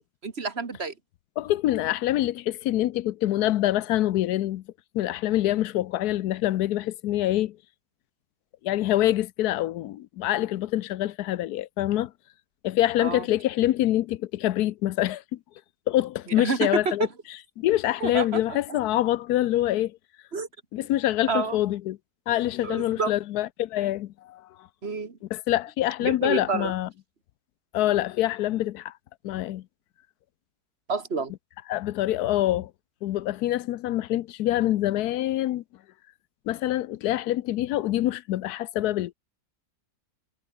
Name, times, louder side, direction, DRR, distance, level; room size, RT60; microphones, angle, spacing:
voice 1, 0.2-0.9 13.0-13.2 16.4-17.1 18.0-18.8 20.3-20.5 21.3-21.6 22.6-23.1 24.8-25.2 26.0-26.7 30.9-31.3, right 4 dB, 40° right, 1.9 m, -29 dB
voice 2, 1.4-4.6 4.9-7.6 8.6-12.1 12.6-15.4 15.9-17.1 17.6-20.0 20.7-22.0 22.3-24.4 25.3-26.9 27.7-28.9 29.2-29.6 31.7-32.7 33.0-35.6 36.5-39.1, left 14 dB, 75° left, 1.1 m, -25 dB
omnidirectional pair, 1.8 m